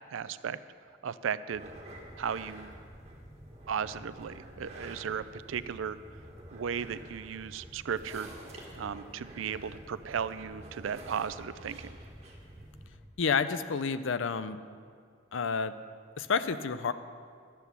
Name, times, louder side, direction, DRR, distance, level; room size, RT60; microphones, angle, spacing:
voice 1, 0.1-0.6 1.0-1.6 2.2-2.7 3.7-6.0 6.5-8.3 8.8-12.0, right 7 dB, 90° right, 15 dB, 0.4 m, -35 dB
sound 1, 1.5-13.0, right 1 dB, 35° right, 1.8 m, -48 dB
voice 2, 13.2-14.6 15.3-15.7 16.2-16.9, left 5 dB, 80° left, 12 dB, 0.5 m, -29 dB
11.5 x 8.1 x 7.0 m, 2.2 s
head